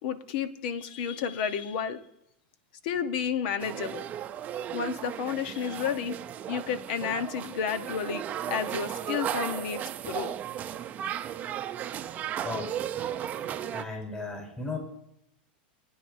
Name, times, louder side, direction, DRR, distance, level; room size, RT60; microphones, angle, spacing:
voice 1, 0.0-2.0 2.8-4.0 4.7-6.2 6.5-10.3, left 7 dB, 65° left, 10 dB, 1.1 m, -31 dB
sound 1, 3.6-13.8, right 10 dB, 30° right, 0.6 m, -35 dB
voice 2, 12.4-12.7 13.7-14.8, left 3 dB, 20° left, 1 dB, 4.8 m, -35 dB
22.0 x 9.9 x 2.7 m, 0.79 s
supercardioid pair, 135°, 5 cm